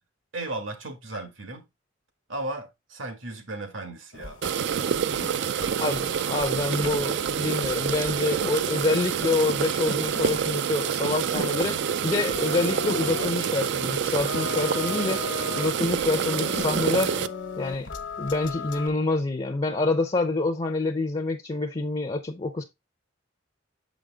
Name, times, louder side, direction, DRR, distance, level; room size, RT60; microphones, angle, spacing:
voice 1, 0.3-1.7 2.3-4.4 5.1-5.5, right 2 dB, 80° right, 1.8 m, -36 dB
sound 1, 4.1-18.9, left 3 dB, 65° left, 1.1 m, -37 dB
sound 2, 4.4-17.3, right 8 dB, 60° right, 0.4 m, -27 dB
voice 2, 5.8-11.8 12.0-15.2 15.5-17.1 17.6-17.9 18.2-22.6, left 2 dB, 30° left, 0.6 m, -27 dB
7.1 x 5.1 x 3.4 m
head